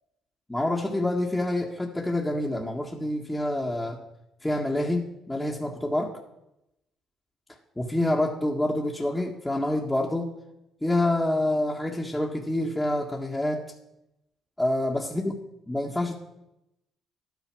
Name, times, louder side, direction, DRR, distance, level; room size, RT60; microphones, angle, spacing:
voice 1, 0.5-4.0 4.4-6.2 7.8-10.3 10.8-13.6 14.6-15.3 15.7-16.1, left 1 dB, 10° left, -2 dB, 1.8 m, -27 dB
12.5 x 9.5 x 6.2 m, 0.89 s
supercardioid pair, 65°, 0 cm